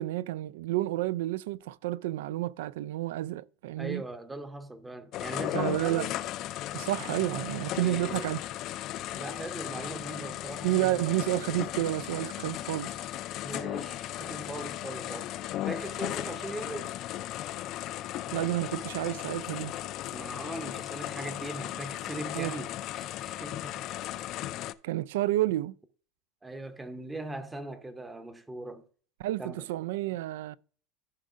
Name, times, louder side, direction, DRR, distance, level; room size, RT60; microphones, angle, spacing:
voice 1, 0.0-4.0 5.5-6.1 6.7-8.4 10.6-12.9 18.3-19.8 22.3-22.5 24.8-25.8 29.2-30.6, right 15 dB, 80° right, 0.3 m, -30 dB
voice 2, 3.8-6.2 7.8-8.3 9.1-11.0 13.4-15.3 15.6-16.9 20.1-24.0 26.4-28.9 29.4-29.7, right 2 dB, 10° right, 0.7 m, -40 dB
sound 1, 5.1-24.7, left 14 dB, 45° left, 0.4 m, -36 dB
14.0 x 5.2 x 2.4 m
supercardioid pair, 140°, 0 cm